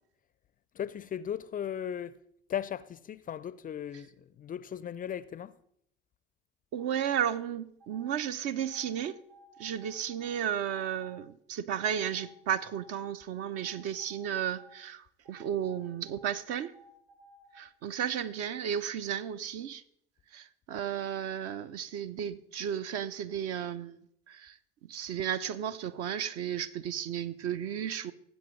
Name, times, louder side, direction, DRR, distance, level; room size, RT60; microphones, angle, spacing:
voice 1, 0.7-2.2 2.5-5.5, left 9 dB, 30° left, 0.4 m, -37 dB
voice 2, 6.7-9.2 9.6-16.7 17.5-19.8 20.3-24.0 24.3-24.6 24.9-28.1, right 9 dB, 55° right, 0.6 m, -34 dB
sound 1, 6.8-7.3 7.8-8.1 8.6-11.2 11.7-13.0 13.5-14.8 15.2-17.6, equal, 90° right, 5.0 m, -57 dB
20.0 x 7.9 x 3.1 m
hypercardioid pair, 65°, 30 cm